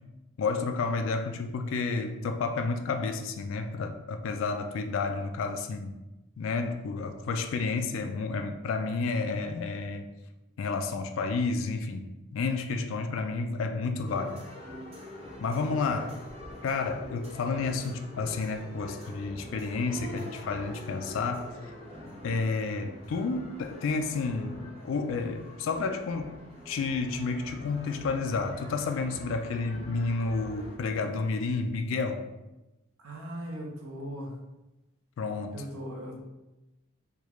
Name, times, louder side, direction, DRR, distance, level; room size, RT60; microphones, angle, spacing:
voice 1, 0.4-5.9 6.4-10.1 10.6-14.5 15.4-16.1 16.6-21.7 22.2-24.6 24.8-26.3 26.7-32.2 35.2-35.6, left 4 dB, 65° left, 6 dB, 0.3 m, -31 dB
sound 1, 14.1-30.8, left 1 dB, 30° right, 0.7 m, -45 dB
voice 2, 15.5-16.1 33.0-34.4 35.5-36.2, equal, 85° right, 0 dB, 0.8 m, -39 dB
3.4 x 2.3 x 3.0 m, 1.0 s
head